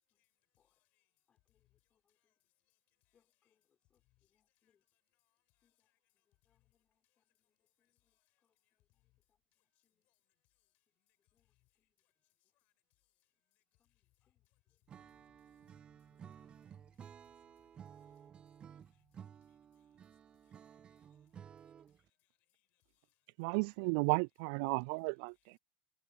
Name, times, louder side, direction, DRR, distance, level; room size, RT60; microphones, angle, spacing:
voice 1, 0.6-1.1 1.5-1.8 2.1-2.3 2.7-2.8 3.1-3.5 4.0-4.7 5.2-6.2 6.5-6.7 7.0-7.2 7.8-9.1 9.5-10.2 10.6-10.7 11.0-11.2 11.4-11.7 12.0-12.7 13.5-13.6 13.9-15.1 15.5-16.1 16.4-17.0 17.4-17.7 18.0-18.2 18.7-20.0 20.4-21.5 21.9-23.3, left 20 dB, 50° left, 5.8 m, -80 dB
voice 2, 1.3-2.4 3.1-4.9 5.6-10.1 11.3-12.0 12.4-12.5 13.8-14.9 16.1-16.9 19.2-19.9, left 8 dB, 30° left, 6.6 m, -84 dB
Acoustic guitar / Strum, 14.9-22.1, right 8 dB, 30° right, 0.7 m, -55 dB
voice 3, 23.4-25.6, right 33 dB, 60° right, 0.4 m, -34 dB
hypercardioid pair, 85°, 3 cm